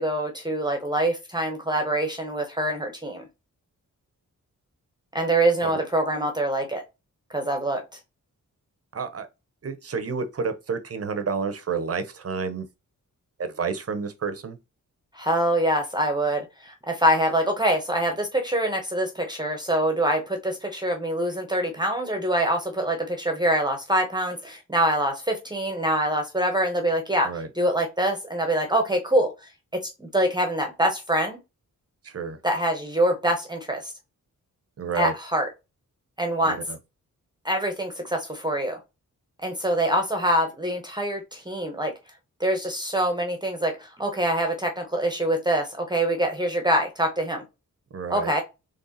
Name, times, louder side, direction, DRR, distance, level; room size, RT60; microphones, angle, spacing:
voice 1, 0.0-3.2 5.1-6.8 7.3-7.8 15.1-27.3 27.6-29.3 29.7-31.4 32.4-33.9 34.9-35.5 36.2-36.6 37.4-38.8 39.4-41.9 42.4-47.4 48.1-48.4, right 1 dB, 15° right, 0.8 m, -25 dB
voice 2, 8.9-9.3 9.6-12.6 13.4-14.6 27.2-27.5 32.0-32.4 34.8-35.1 36.4-36.8 47.9-48.3, right 5 dB, 45° right, 0.7 m, -30 dB
4.0 x 3.3 x 4.0 m
wide cardioid pair, 155°, 33 cm